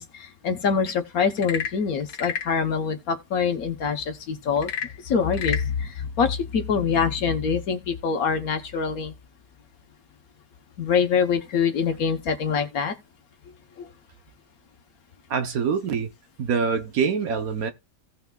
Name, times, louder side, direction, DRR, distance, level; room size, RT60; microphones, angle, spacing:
voice 1, 0.0-9.1 10.8-12.9 13.8-13.9, left 6 dB, 60° left, 1.3 m, -25 dB
Frog / Percussion / Wood, 1.3-2.6 4.6-5.7, left 8 dB, 85° left, 1.5 m, -31 dB
voice 2, 15.3-16.1 16.4-17.7, right 6 dB, 60° right, 1.1 m, -25 dB
16.5 x 5.7 x 2.2 m
omnidirectional pair, 1.8 m